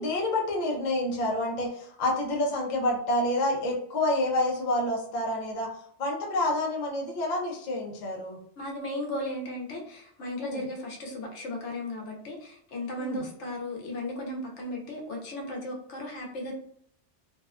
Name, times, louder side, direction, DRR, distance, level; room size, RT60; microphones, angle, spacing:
voice 1, 0.0-5.7 6.0-8.4 10.4-10.6 13.0-13.2, left 1 dB, 50° left, -1 dB, 0.6 m, -28 dB
voice 2, 8.6-16.5, left 1 dB, 80° left, 0 dB, 1.0 m, -36 dB
2.6 x 2.1 x 2.3 m, 0.62 s
omnidirectional pair, 1.2 m